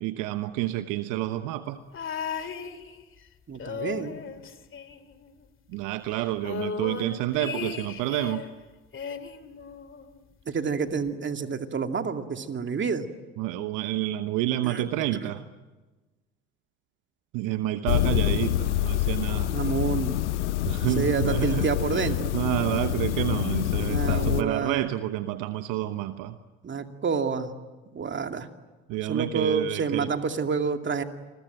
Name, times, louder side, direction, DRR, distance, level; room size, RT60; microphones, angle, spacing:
voice 1, 0.0-1.8 5.7-8.4 13.4-15.4 17.3-19.6 20.6-26.4 28.9-30.1, right 14 dB, 65° right, 11 dB, 1.1 m, -29 dB
sound 1, 1.9-3.2 3.5-5.5 5.7-5.8 6.1-8.5 8.9-10.2 11.1-11.2, left 6 dB, 35° left, 2.3 m, -36 dB
voice 2, 3.5-4.2 10.5-13.1 14.6-14.8 15.2-15.3 19.5-20.2 20.9-22.4 23.9-24.9 26.6-27.5 27.9-28.5 29.1-31.0, right 5 dB, 35° right, 6 dB, 2.5 m, -28 dB
Denver Sculpture Columbus, 17.9-24.4, left 14 dB, 85° left, 0.9 m, -26 dB
28.0 x 21.5 x 9.1 m, 1.2 s
hypercardioid pair, 65°, 34 cm